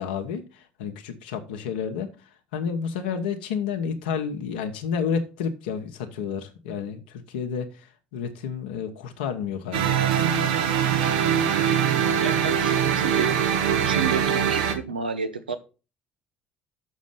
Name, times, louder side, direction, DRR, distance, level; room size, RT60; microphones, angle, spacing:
voice 1, 0.0-2.1 2.5-10.0, left 6 dB, 75° left, 1.0 m, -30 dB
sound 1, 9.7-14.8, right 8 dB, 75° right, 1.1 m, -22 dB
voice 2, 12.2-13.4 13.8-15.6, right 6 dB, 90° right, 0.8 m, -30 dB
6.5 x 6.2 x 5.7 m
hypercardioid pair, 55°, 5 cm